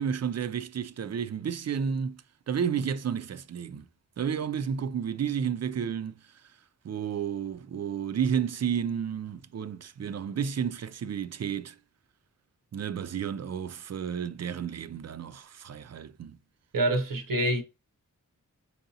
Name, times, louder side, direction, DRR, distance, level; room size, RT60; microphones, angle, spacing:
voice 1, 0.0-3.9 4.2-6.5 6.8-11.8 12.7-16.4, right 7 dB, 50° right, 0.4 m, -32 dB
voice 2, 16.7-17.6, right 1 dB, 80° right, 0.8 m, -26 dB
4.7 x 2.7 x 2.7 m
cardioid pair, 45°, 33 cm